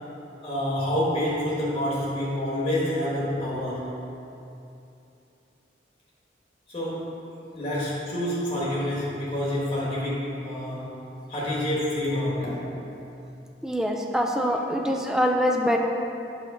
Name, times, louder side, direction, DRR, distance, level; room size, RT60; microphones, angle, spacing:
voice 1, 0.4-3.9 6.7-7.2 7.5-12.7 14.4-14.5, left 1 dB, 30° left, -7 dB, 1.2 m, -28 dB
voice 2, 13.6-15.8, equal, 5° right, 2 dB, 0.3 m, -24 dB
6.3 x 3.1 x 5.6 m, 2.8 s
head